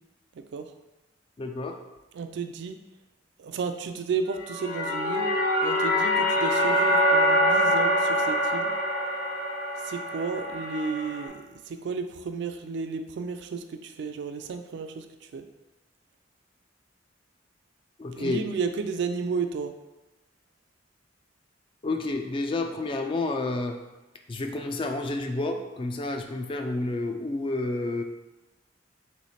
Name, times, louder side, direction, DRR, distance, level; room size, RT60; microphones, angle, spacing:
voice 1, 1.4-1.8 18.0-18.4 21.8-23.8 24.3-28.0, left 2 dB, 25° left, 5 dB, 0.3 m, -30 dB
voice 2, 2.1-2.8 3.4-5.3 5.6-8.7 9.8-15.4 18.1-19.7, right 5 dB, 65° right, 7 dB, 0.3 m, -32 dB
sound 1, 4.3-11.3, equal, 70° left, 0.9 m, -25 dB
3.2 x 3.1 x 4.1 m, 1.1 s
head